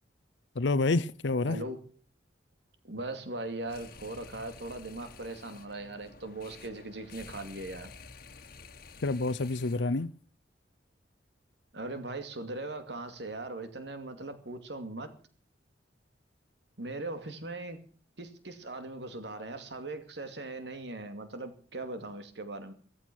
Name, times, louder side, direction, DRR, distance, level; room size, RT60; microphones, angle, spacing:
voice 1, 0.5-1.6 9.0-10.1, left 3 dB, 70° left, 0.7 m, -28 dB
voice 2, 1.5-1.8 2.8-7.9 11.7-15.1 16.8-17.8 18.2-22.7, right 2 dB, 65° right, 2.5 m, -39 dB
sound 1, 3.6-10.1, left 4 dB, 50° left, 1.6 m, -51 dB
15.5 x 14.5 x 6.2 m
head